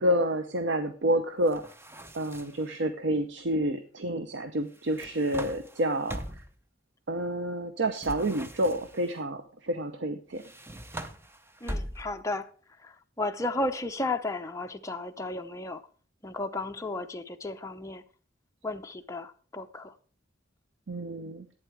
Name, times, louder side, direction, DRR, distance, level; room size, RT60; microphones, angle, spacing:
voice 1, 0.0-1.7 2.1-6.2 7.1-10.4 20.9-21.5, right 1 dB, 70° right, 0.7 m, -29 dB
sound 1, 1.5-2.7 4.7-6.6 8.0-9.1 10.3-12.3, right 1 dB, 15° right, 0.7 m, -41 dB
voice 2, 11.6-12.5 12.8-15.8 16.2-18.0 18.6-19.9, left 2 dB, 15° left, 0.8 m, -34 dB
11.5 x 8.9 x 4.7 m
head